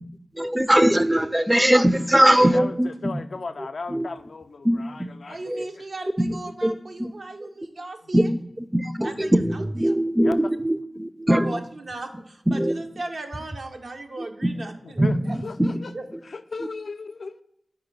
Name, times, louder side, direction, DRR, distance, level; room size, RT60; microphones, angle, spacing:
voice 1, 0.3-3.2 3.6-4.1 4.6-5.1 5.5-5.7 6.2-6.4 6.6-7.1 7.4-7.5 8.1-11.6 12.5-12.8 14.2-14.5 15.0-15.8 16.6-16.7, right 1 dB, 15° right, 13 dB, 0.4 m, -21 dB
voice 2, 2.3-2.7 3.0-4.7 5.2-5.4 10.2-10.4 15.0-15.1 15.4-15.9 16.5-17.4, left 4 dB, 75° left, 10 dB, 0.3 m, -34 dB
voice 3, 5.3-8.3 9.0-9.9 11.3-15.4 15.9-16.0, right 2 dB, 75° right, 4 dB, 0.7 m, -37 dB
4.8 x 4.3 x 5.3 m, 0.80 s
cardioid pair, 45°, 0 cm